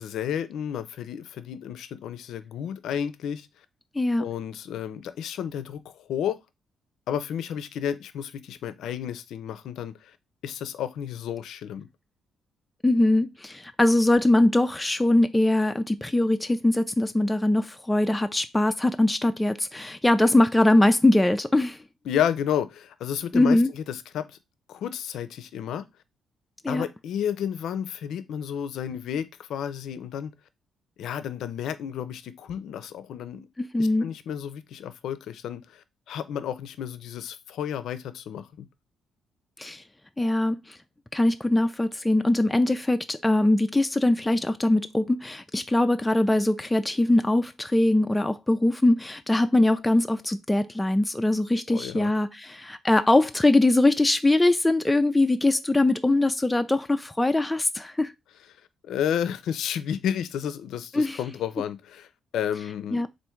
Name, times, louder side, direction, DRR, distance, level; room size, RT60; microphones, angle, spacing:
voice 1, 0.0-3.5 4.2-6.4 7.1-10.2 10.4-11.9 22.1-24.3 24.7-25.8 26.7-30.3 31.0-33.5 33.8-38.7 51.7-52.1 58.8-62.1 62.3-63.0, left 9 dB, 75° left, 0.4 m, -31 dB
voice 2, 4.0-4.3 12.8-21.8 23.3-23.7 26.6-26.8 33.6-34.1 39.6-39.8 40.2-40.8 41.1-58.1 60.9-61.2 62.9-63.1, left 2 dB, 10° left, 0.3 m, -22 dB
3.5 x 2.5 x 4.3 m
cardioid pair, 90°, 0 cm